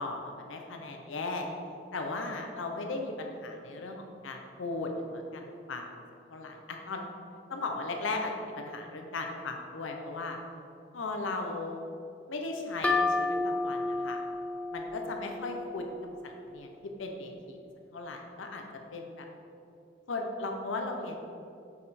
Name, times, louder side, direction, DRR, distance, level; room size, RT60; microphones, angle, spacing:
voice 1, 0.0-1.5 1.9-5.8 6.3-7.1 7.5-10.4 10.9-11.8 12.3-14.2 14.7-15.9 16.2-17.6 17.9-18.6 18.9-19.2 20.1-21.2, left 3 dB, 85° left, 3 dB, 0.7 m, -37 dB
sound 1, 12.8-16.4, left 3 dB, 5° left, 0.4 m, -31 dB
6.7 x 5.2 x 4.2 m, 2.6 s
head